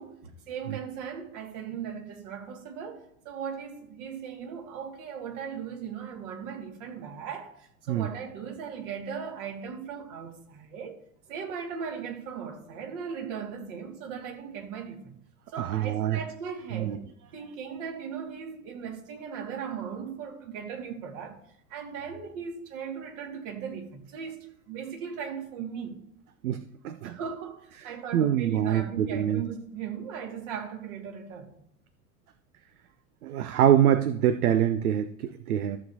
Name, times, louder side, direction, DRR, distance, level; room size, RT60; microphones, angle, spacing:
voice 1, 0.0-11.0 11.3-15.2 15.5-17.0 17.3-21.4 21.7-26.0 27.0-31.6, right 7 dB, 55° right, 2.3 m, -38 dB
voice 2, 15.6-16.2 16.7-17.0 26.4-27.2 27.8-29.4 33.2-35.8, right 10 dB, 75° right, 0.6 m, -25 dB
14.0 x 7.0 x 2.8 m
figure-of-eight pair, 85°, 45 cm